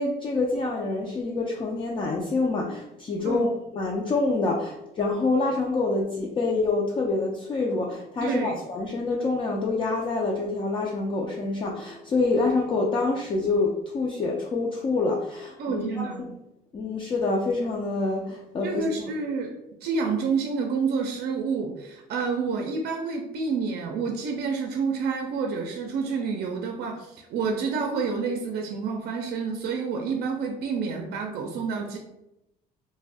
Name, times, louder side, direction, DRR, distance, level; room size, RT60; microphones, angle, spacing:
voice 1, 0.0-16.1 16.7-19.1, left 3 dB, 30° left, -2 dB, 0.4 m, -26 dB
voice 2, 8.2-8.6 15.6-16.3 18.6-19.5 19.8-32.0, right 5 dB, 70° right, 2 dB, 0.5 m, -29 dB
2.5 x 2.1 x 3.3 m, 0.88 s
cardioid pair, 110°, 17 cm